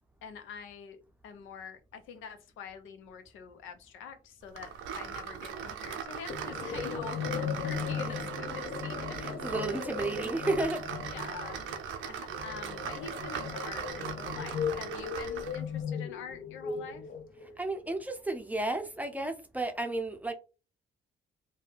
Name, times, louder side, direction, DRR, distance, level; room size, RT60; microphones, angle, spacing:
voice 1, 0.2-9.3 9.7-9.8 10.9-11.7 12.0-17.0, left 6 dB, 90° left, 0.6 m, -45 dB
sound 1, 4.6-15.7, right 7 dB, 85° right, 0.6 m, -39 dB
sound 2, 6.3-17.6, left 7 dB, 50° left, 0.6 m, -37 dB
voice 2, 9.2-10.8 17.6-20.3, right 2 dB, 10° right, 0.5 m, -32 dB
2.7 x 2.2 x 3.3 m
cardioid pair, 90°, 20 cm